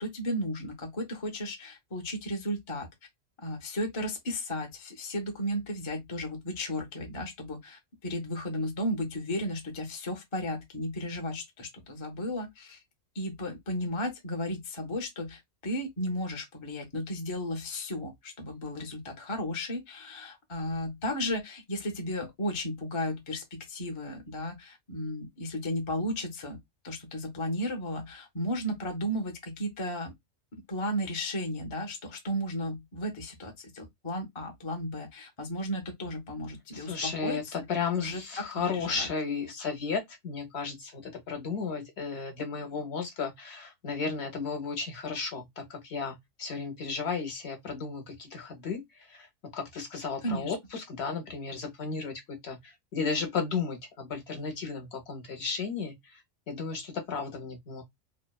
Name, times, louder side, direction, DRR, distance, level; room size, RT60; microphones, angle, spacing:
voice 1, 0.0-2.9 3.4-12.8 13.1-26.6 26.8-30.1 30.7-38.2 38.5-39.1 50.2-50.5, left 1 dB, 35° left, 0.5 m, -34 dB
voice 2, 36.7-49.3 49.5-56.2 56.5-57.8, left 5 dB, 60° left, 0.9 m, -34 dB
2.7 x 2.0 x 2.2 m
omnidirectional pair, 1.3 m